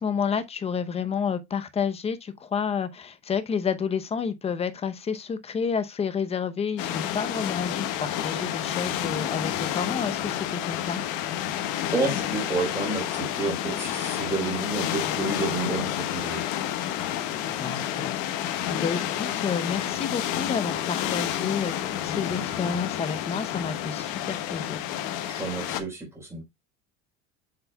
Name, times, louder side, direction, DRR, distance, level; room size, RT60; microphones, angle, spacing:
voice 1, 0.0-11.0 17.4-24.8, left 6 dB, 20° left, 0.8 m, -30 dB
sound 1, 6.8-25.8, left 11 dB, 65° left, 1.3 m, -30 dB
voice 2, 11.9-16.4 25.3-26.4, right 3 dB, 10° right, 4.2 m, -30 dB
7.5 x 7.2 x 2.3 m
cardioid pair, 150°, 32 cm